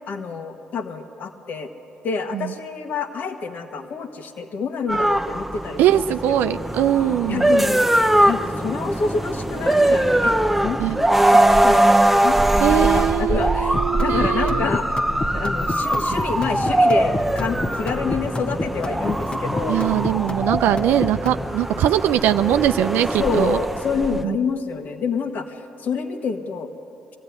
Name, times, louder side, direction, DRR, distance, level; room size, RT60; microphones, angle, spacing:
voice 1, 0.1-1.7 2.0-6.6 7.3-7.9 8.3-11.1 11.6-14.9 15.3-19.8 23.2-26.7, left 5 dB, 60° left, 6 dB, 1.8 m, -28 dB
sound 1, 4.9-24.2, right 1 dB, 5° right, 0.8 m, -21 dB
voice 2, 5.8-7.5 10.8-11.0 12.6-14.7 19.7-23.6 24.2-24.4, right 12 dB, 75° right, 11 dB, 0.5 m, -21 dB
sound 2, 13.7-21.5, left 2 dB, 30° left, 1.1 m, -30 dB
23.5 x 15.5 x 9.6 m, 2.9 s
supercardioid pair, 65°, 3 cm